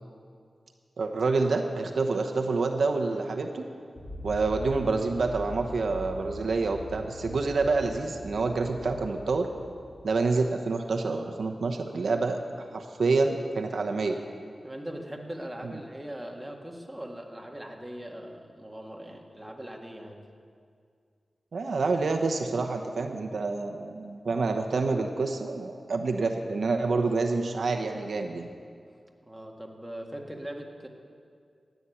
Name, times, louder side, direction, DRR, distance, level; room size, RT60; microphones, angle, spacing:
voice 1, 1.0-3.6 4.2-9.5 10.0-12.4 12.7-14.2 15.6-15.7 21.5-28.5, right 3 dB, 75° right, 4 dB, 1.0 m, -27 dB
sound 1, 4.0-10.5, left 1 dB, 35° left, 2.1 m, -42 dB
voice 2, 14.6-20.2 29.2-30.9, right 1 dB, 5° right, 0 dB, 1.8 m, -40 dB
14.5 x 9.3 x 8.5 m, 2.2 s
wide cardioid pair, 80°, 0 cm